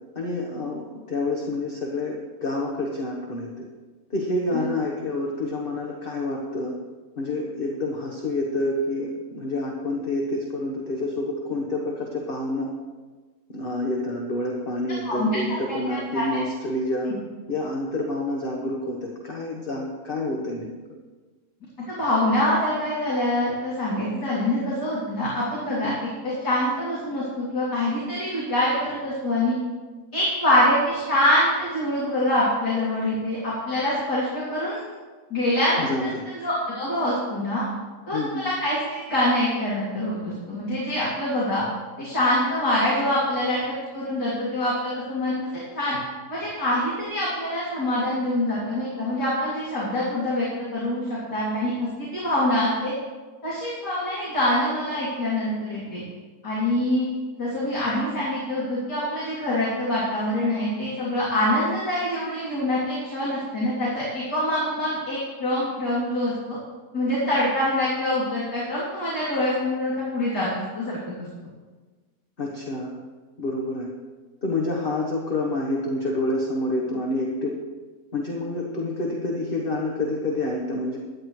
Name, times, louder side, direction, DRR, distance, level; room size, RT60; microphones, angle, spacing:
voice 1, 0.1-0.8 1.1-3.7 4.1-6.7 7.2-12.7 13.5-17.1 17.5-20.7 25.8-26.0 35.8-36.2 38.1-38.5 72.4-73.0 73.4-73.9 74.4-77.6 78.1-81.0, left 2 dB, 35° left, -1 dB, 1.4 m, -28 dB
voice 2, 21.9-25.9 26.2-29.5 30.1-35.0 35.3-35.9 36.3-37.6 38.1-41.6 42.0-45.3 45.8-46.0 46.3-50.5 50.7-52.9 53.4-56.0 56.4-57.0 57.4-66.6 66.9-70.5 70.8-71.0, left 1 dB, 85° left, -8 dB, 3.7 m, -25 dB
17.0 x 11.5 x 3.3 m, 1.4 s
omnidirectional pair, 1.7 m